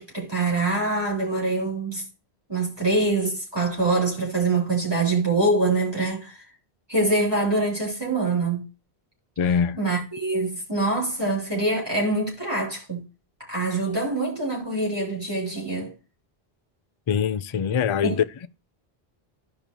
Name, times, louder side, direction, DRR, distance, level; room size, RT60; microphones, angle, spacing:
voice 1, 0.0-2.0 2.5-6.4 6.9-8.6 9.8-13.0 13.5-15.9 18.0-18.2, right 2 dB, 25° right, 3.4 m, -24 dB
voice 2, 9.4-9.8 17.1-18.5, left 7 dB, 50° left, 0.4 m, -23 dB
13.5 x 5.2 x 3.0 m
omnidirectional pair, 1.0 m